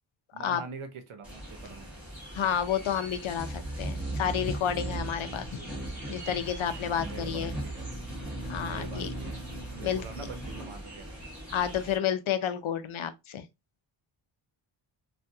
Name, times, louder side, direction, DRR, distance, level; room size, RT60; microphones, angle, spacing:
voice 1, 0.3-1.9 5.5-5.8 6.8-8.0 8.7-11.2, right 5 dB, 80° right, 0.9 m, -45 dB
sound 1, 1.2-12.0, right 1 dB, 5° right, 1.7 m, -38 dB
voice 2, 2.3-5.5 6.1-7.6 8.5-9.1 9.8-10.3 11.5-13.5, left 9 dB, 80° left, 0.6 m, -30 dB
3.4 x 2.5 x 2.7 m
wide cardioid pair, 160°, 48 cm